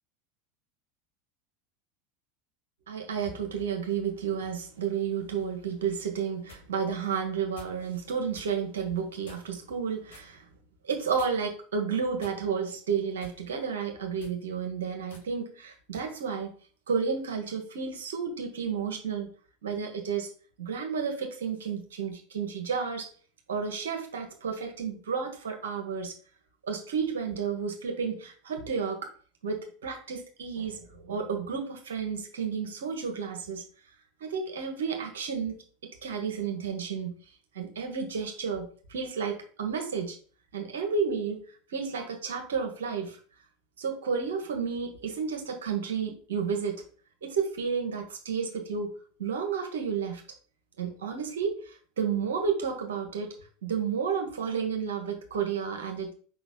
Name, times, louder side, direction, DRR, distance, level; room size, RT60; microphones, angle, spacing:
voice 1, 2.9-10.4 10.8-16.5 16.9-19.3 19.6-20.3 20.6-23.1 23.5-26.1 26.6-29.0 29.4-33.6 34.2-35.6 36.0-37.2 37.5-40.2 40.5-41.4 41.7-43.2 43.8-46.8 47.2-48.9 49.2-50.2 50.8-53.3 53.6-56.1, right 6 dB, 65° right, 3 dB, 1.6 m, -31 dB
sound 1, 6.4-6.7 7.6-7.8 8.3-8.5 9.2-9.6 10.1-10.3 11.2-11.6 12.2-12.7 13.2-13.4 14.1-14.4 15.1-15.3 15.9-16.1, left 3 dB, 65° left, 2.2 m, -51 dB
5.2 x 3.9 x 5.4 m, 0.42 s
figure-of-eight pair, 80°, 0 cm